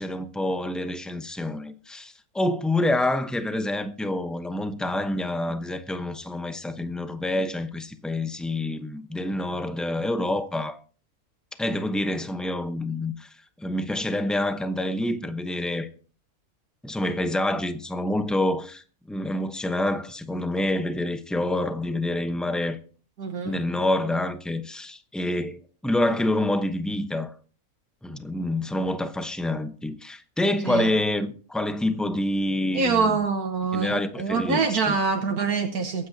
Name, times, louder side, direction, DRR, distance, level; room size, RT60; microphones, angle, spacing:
voice 1, 0.0-10.8 11.6-15.9 16.8-22.8 23.4-27.3 28.0-33.2 33.7-34.6 34.9-35.0, left 1 dB, ahead, 0.7 m, -27 dB
voice 2, 23.2-23.6 30.6-30.9 32.7-36.1, right 4 dB, 80° right, 1.7 m, -25 dB
23.0 x 9.4 x 2.8 m
omnidirectional pair, 1.6 m